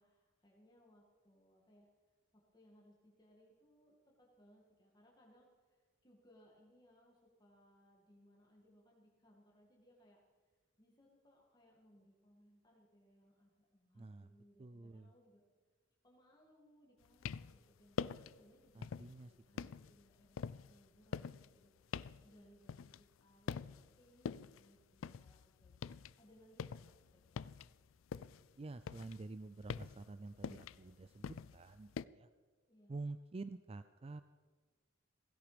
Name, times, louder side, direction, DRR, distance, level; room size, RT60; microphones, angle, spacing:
voice 1, 0.0-1.9 2.3-15.4 16.0-25.9 26.2-27.5 32.7-32.9, equal, 20° left, -2 dB, 2.2 m, -68 dB
voice 2, 14.0-14.3 14.6-15.1 18.8-19.7 28.6-31.9 32.1-32.3 32.9-34.2, right 3 dB, 30° right, 12 dB, 0.4 m, -49 dB
sound 1, 17.0-17.6 17.9-18.4 18.8-19.2 19.6-23.2 23.5-23.9 24.3-26.1 26.4-28.5 28.8-32.1, left 6 dB, 85° left, 0.4 m, -45 dB
16.5 x 16.0 x 5.1 m, 1.4 s
head